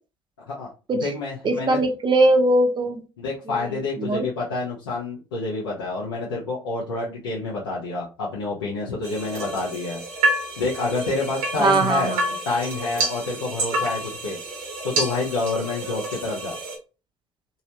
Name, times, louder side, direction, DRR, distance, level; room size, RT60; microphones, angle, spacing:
voice 1, 0.5-1.8 3.2-10.0 10.6-12.1 12.5-14.4 14.8-16.6, left 3 dB, 85° left, -6 dB, 0.7 m, -28 dB
voice 2, 1.4-3.0 3.5-4.3 11.6-12.2, right 2 dB, 40° right, 5 dB, 0.8 m, -21 dB
sound 1, 9.0-16.8, right 2 dB, 70° right, 1.0 m, -29 dB
3.1 x 2.7 x 2.8 m, 0.32 s
hypercardioid pair, 50°, 12 cm